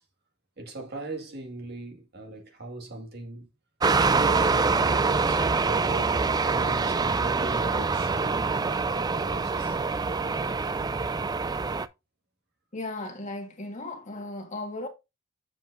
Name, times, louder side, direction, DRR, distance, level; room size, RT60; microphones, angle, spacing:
voice 1, 0.6-3.5 4.0-9.8, right 2 dB, 55° right, 2.0 m, -40 dB
sound 1, 3.8-11.9, right 4 dB, 20° right, 0.3 m, -25 dB
voice 2, 12.7-14.9, left 2 dB, 40° left, 1.7 m, -36 dB
7.7 x 7.3 x 2.6 m
head